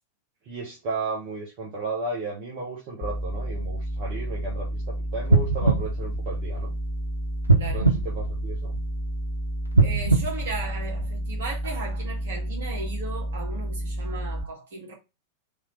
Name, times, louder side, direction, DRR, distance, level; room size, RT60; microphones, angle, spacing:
voice 1, 0.5-6.7 7.7-8.7, right 3 dB, 45° right, 1.2 m, -34 dB
sound 1, 3.0-14.4, right 1 dB, 40° left, 0.4 m, -31 dB
sound 2, 5.3-6.9 7.4-9.0 9.7-11.4 11.9-12.0, right 3 dB, 90° right, 0.6 m, -23 dB
voice 2, 7.6-7.9 9.8-14.9, right 3 dB, 60° right, 1.6 m, -36 dB
3.5 x 2.9 x 3.1 m
figure-of-eight pair, 90°, 0 cm